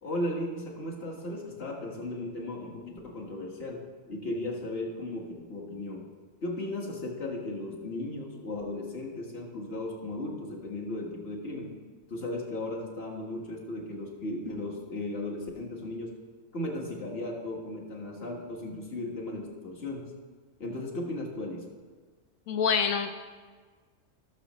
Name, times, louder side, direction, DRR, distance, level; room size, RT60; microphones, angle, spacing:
voice 1, 0.0-6.1 6.4-11.8 12.1-16.1 16.5-20.1 20.6-21.7, left 1 dB, 50° left, -1 dB, 1.8 m, -36 dB
voice 2, 22.5-23.1, left 6 dB, 85° left, 6 dB, 1.0 m, -26 dB
17.0 x 6.9 x 3.1 m, 1.4 s
omnidirectional pair, 1.4 m